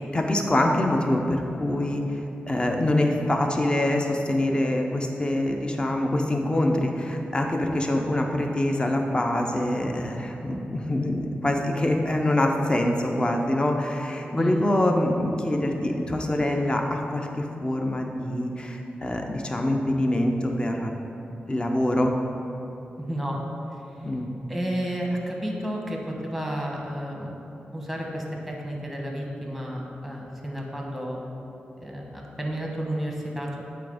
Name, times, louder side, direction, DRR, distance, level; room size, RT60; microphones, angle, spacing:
voice 1, 0.1-20.9 21.5-22.2 24.0-24.3, left 1 dB, 25° left, 2 dB, 0.6 m, -25 dB
voice 2, 23.0-23.4 24.5-27.4 27.7-31.2 31.8-33.6, equal, ahead, -1 dB, 1.0 m, -31 dB
8.2 x 3.4 x 5.0 m, 3.0 s
wide cardioid pair, 100°, 4 cm